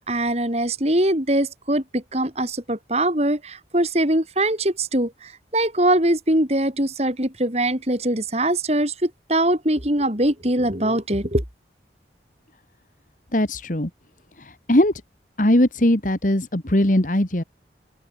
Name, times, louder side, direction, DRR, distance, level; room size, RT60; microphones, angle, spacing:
voice 1, 0.0-11.4, right 1 dB, 35° right, 4.9 m, -22 dB
voice 2, 13.3-13.9 14.4-14.9 15.4-17.4, left 1 dB, 45° left, 2.2 m, -20 dB
open air
head